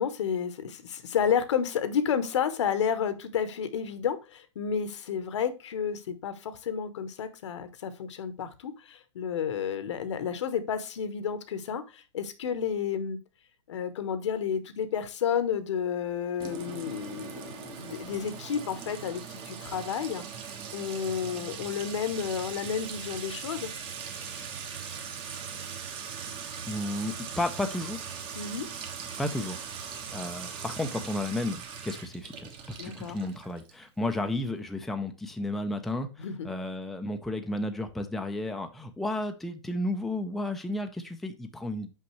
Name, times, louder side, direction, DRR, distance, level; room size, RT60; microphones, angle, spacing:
voice 1, 0.0-13.2 13.7-20.2 20.7-23.7 28.3-28.7 32.8-33.2 36.2-36.5, left 7 dB, 70° left, 12 dB, 1.0 m, -31 dB
Sink (filling or washing) / Trickle dribble / Fill (with liquid), 16.4-33.8, right 6 dB, 35° right, 1.4 m, -40 dB
voice 2, 26.7-28.0 29.2-29.7 30.1-41.9, left 1 dB, ahead, 5 dB, 0.5 m, -33 dB
5.8 x 5.3 x 3.0 m, 0.29 s
hypercardioid pair, 120°, 16 cm